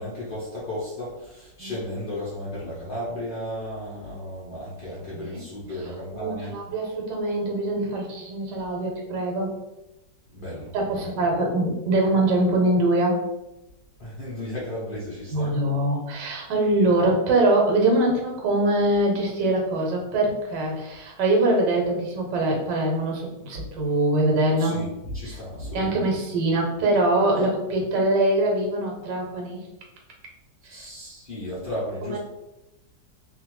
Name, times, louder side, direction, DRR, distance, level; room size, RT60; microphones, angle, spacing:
voice 1, 0.0-6.6 10.3-11.1 14.0-15.5 24.6-26.1 30.7-32.2, left 1 dB, 60° left, -8 dB, 0.5 m, -34 dB
voice 2, 6.1-9.5 10.7-13.2 15.3-24.8 25.3-25.4 25.7-29.6 30.6-30.9 32.0-32.2, right 1 dB, 75° right, 0 dB, 1.4 m, -23 dB
2.7 x 2.4 x 3.0 m, 0.93 s
omnidirectional pair, 1.9 m